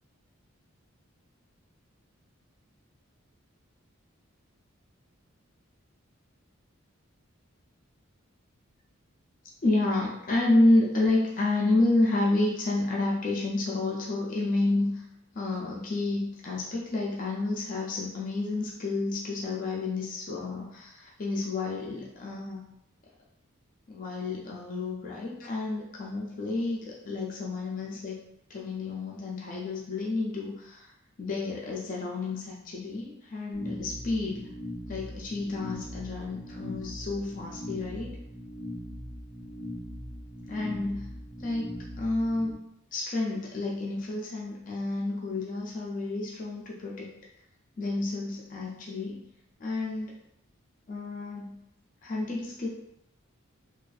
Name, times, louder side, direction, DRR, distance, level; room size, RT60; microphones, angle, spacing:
voice 1, 9.6-15.0 15.3-22.7 23.9-28.2 28.5-30.9 31.2-34.5 34.9-38.2 40.5-41.1 41.4-41.7 42.0-42.6 42.9-47.1 47.8-49.2 49.6-50.1 50.9-51.6 52.0-52.7, left 2 dB, 40° left, -3 dB, 0.4 m, -30 dB
sound 1, 33.5-42.5, left 1 dB, 70° right, 0.7 m, -40 dB
2.4 x 2.3 x 2.3 m, 0.79 s
head